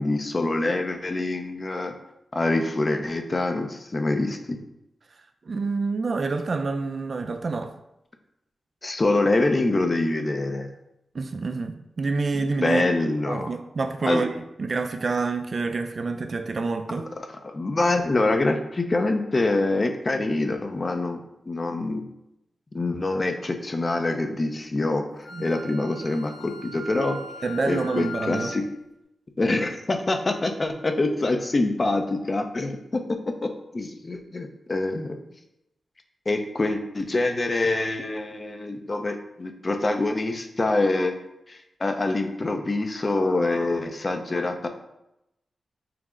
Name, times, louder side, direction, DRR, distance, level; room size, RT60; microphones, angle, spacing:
voice 1, 0.0-1.9 2.3-4.6 8.8-10.7 12.6-13.5 14.0-14.2 17.0-17.1 17.4-22.0 22.7-27.2 27.6-28.6 29.4-35.1 36.3-41.1 41.5-44.7, left 2 dB, 35° left, 5 dB, 0.5 m, -25 dB
voice 2, 5.5-7.7 11.1-12.8 13.3-17.1 25.3-25.5 27.4-28.5, right 3 dB, 50° right, 7 dB, 0.3 m, -27 dB
Wind instrument woodwind instrument, 25.2-28.6, left 2 dB, 70° left, 0.8 m, -39 dB
5.8 x 2.0 x 3.6 m, 0.86 s
wide cardioid pair, 95°, 0 cm